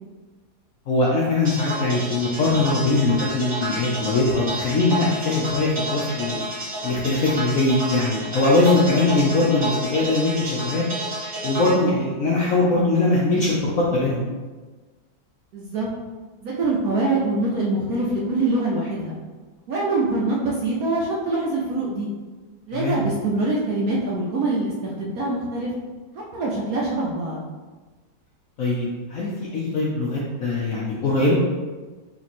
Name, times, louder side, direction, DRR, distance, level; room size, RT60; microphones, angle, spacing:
voice 1, 0.9-10.8 11.4-14.3 22.7-23.0 28.6-31.3, left 2 dB, 70° left, -5 dB, 0.8 m, -21 dB
sound 1, 1.4-11.7, right 1 dB, 40° right, 0.4 m, -30 dB
voice 2, 15.5-15.9 16.4-19.2 19.7-22.1 22.7-25.7 26.1-27.4, right 2 dB, 65° right, -4 dB, 0.9 m, -24 dB
3.4 x 3.0 x 4.1 m, 1.3 s
omnidirectional pair, 2.1 m